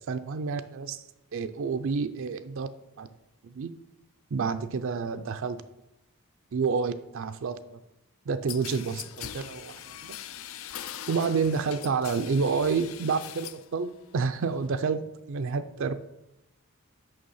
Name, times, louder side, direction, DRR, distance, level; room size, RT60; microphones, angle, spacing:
voice 1, 0.1-1.0 1.3-2.7 3.0-3.1 3.4-3.7 4.3-5.6 6.5-7.8 8.3-10.2 11.1-15.0 15.3-15.9, right 5 dB, 60° right, 10 dB, 0.4 m, -29 dB
sound 1, 8.5-13.7 14.0-14.7, left 11 dB, 65° left, 0.4 m, -41 dB
6.5 x 5.8 x 5.5 m, 0.88 s
head